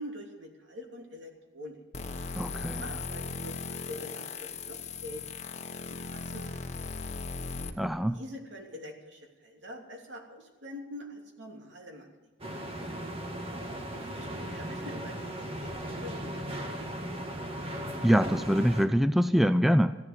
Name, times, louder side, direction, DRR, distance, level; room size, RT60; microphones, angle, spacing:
voice 1, 0.0-1.8 2.6-5.2 5.9-6.9 8.1-12.3 14.0-16.4, left 1 dB, 70° right, 1 dB, 3.0 m, -45 dB
sound 1, 1.9-7.7, left 4 dB, 35° left, 1.2 m, -38 dB
voice 2, 2.4-2.8 7.8-8.2 18.0-20.0, equal, ahead, 10 dB, 0.4 m, -24 dB
sound 2, 12.4-18.9, right 1 dB, 30° right, 1.8 m, -37 dB
15.0 x 11.0 x 8.1 m, 1.2 s
head